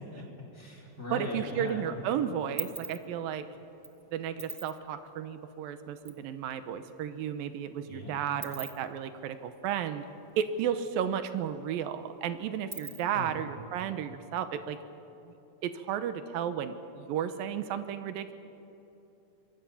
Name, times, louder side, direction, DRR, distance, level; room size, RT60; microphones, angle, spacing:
voice 1, 0.1-2.0 7.9-8.4 13.1-13.7, left 2 dB, 20° left, 0 dB, 4.3 m, -40 dB
sound 1, 0.9-1.7 2.0-6.2 6.5-6.6 6.8-10.7 11.0-11.1 11.4-13.3, right 5 dB, 35° right, 1.4 m, -44 dB
voice 2, 1.1-3.5 4.1-10.0 10.4-14.8 15.3-15.4 15.6-18.3, right 9 dB, 85° right, 10 dB, 2.7 m, -33 dB
26.5 x 22.5 x 7.2 m, 2.9 s
omnidirectional pair, 4.1 m